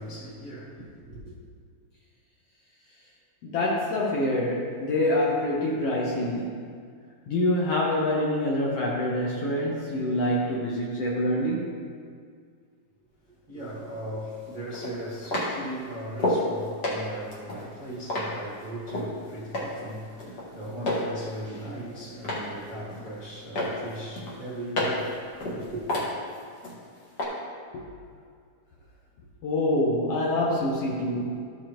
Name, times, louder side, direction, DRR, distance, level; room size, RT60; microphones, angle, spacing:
voice 1, 0.0-1.3 13.3-25.2 25.4-25.8, right 1 dB, 75° right, -9 dB, 0.4 m, -38 dB
voice 2, 3.4-6.8 7.3-11.8 27.7-27.9 29.4-31.4, left 1 dB, 65° left, -4 dB, 1.5 m, -26 dB
sound 1, 13.7-13.8 14.7-16.5 16.8-19.1 19.5-19.9 20.2-21.1 21.4-22.5 22.9-23.3 23.6-25.1 25.4-26.8 27.2-27.3, left 1 dB, 45° left, 1.5 m, -30 dB
14.0 x 6.5 x 3.0 m, 2.1 s
omnidirectional pair, 4.0 m